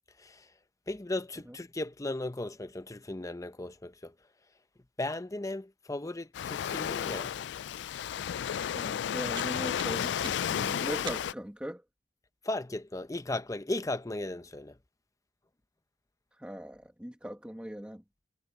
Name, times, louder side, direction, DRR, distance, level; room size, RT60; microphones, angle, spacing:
voice 1, 0.9-4.1 5.0-7.4 12.4-14.8, left 2 dB, 20° left, 0.7 m, -36 dB
Waves surf, 6.3-11.3, left 9 dB, 90° left, 0.3 m, -33 dB
voice 2, 8.7-11.8 16.4-18.0, equal, 5° right, 1.3 m, -40 dB
sound 1, 9.3-11.6, right 5 dB, 30° right, 1.2 m, -47 dB
head